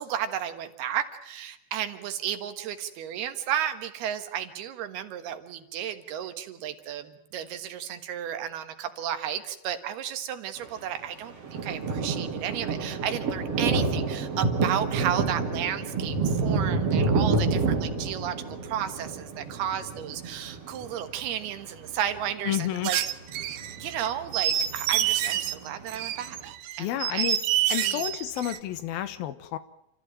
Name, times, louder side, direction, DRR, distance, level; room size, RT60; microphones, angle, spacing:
voice 1, 0.0-23.0 23.4-23.5 23.8-26.4 26.8-27.3 27.8-28.1, right 10 dB, 85° right, 8 dB, 3.5 m, -33 dB
sound 1, 11.0-11.1 11.3-22.8 23.1-26.2, right 4 dB, 40° right, 3.9 m, -29 dB
voice 2, 22.5-22.9 26.8-27.4 27.7-29.6, left 12 dB, 75° left, 13 dB, 2.8 m, -30 dB
sound 2, 22.8-25.5 25.9-28.6, right 11 dB, 65° right, 2.2 m, -27 dB
29.0 x 14.5 x 9.0 m, 0.82 s
omnidirectional pair, 4.4 m